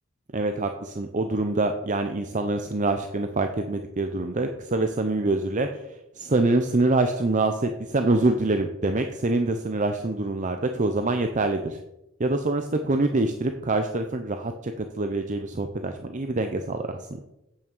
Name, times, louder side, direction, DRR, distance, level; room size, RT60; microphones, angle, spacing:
voice 1, 0.3-11.8 12.2-17.2, right 2 dB, 35° right, 6 dB, 0.7 m, -25 dB
8.5 x 7.3 x 6.6 m, 0.91 s
head